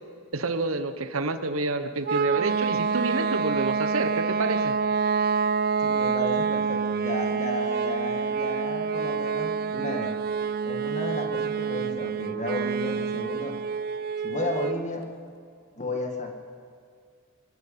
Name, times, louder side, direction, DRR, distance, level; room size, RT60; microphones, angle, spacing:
voice 1, 0.3-4.8, right 3 dB, 85° right, 9 dB, 1.2 m, -28 dB
sound 1, 2.0-14.8, right 5 dB, 45° right, 0.4 m, -27 dB
voice 2, 5.8-10.2 10.6-13.6 14.2-15.0 15.8-16.3, left 1 dB, 35° left, 3 dB, 2.0 m, -33 dB
24.0 x 12.5 x 8.7 m, 2.2 s
head